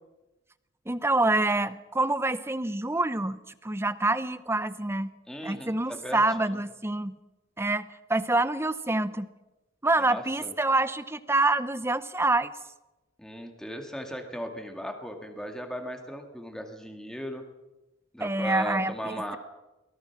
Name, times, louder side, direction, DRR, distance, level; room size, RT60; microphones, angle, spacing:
voice 1, 0.9-5.1 5.4-7.2 7.6-9.3 9.8-12.5 18.2-19.4, right 2 dB, 10° right, 14 dB, 0.7 m, -26 dB
voice 2, 5.3-6.6 10.0-10.5 13.2-17.4 18.1-19.4, equal, 5° left, 3 dB, 2.0 m, -37 dB
23.0 x 19.0 x 6.0 m, 1.0 s
head